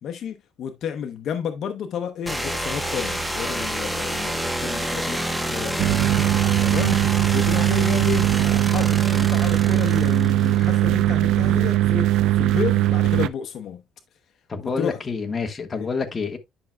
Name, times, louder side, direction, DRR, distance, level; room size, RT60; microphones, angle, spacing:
voice 1, 0.0-6.0 6.6-13.8 14.6-15.0 15.7-15.9, left 7 dB, 60° left, 0.8 m, -31 dB
sound 1, 2.3-11.0, right 1 dB, 5° right, 0.9 m, -29 dB
sound 2, 5.8-13.3, right 13 dB, 85° right, 0.5 m, -20 dB
voice 2, 14.5-16.4, left 5 dB, 25° left, 1.4 m, -28 dB
10.5 x 5.9 x 2.2 m
cardioid pair, 140°, 0 cm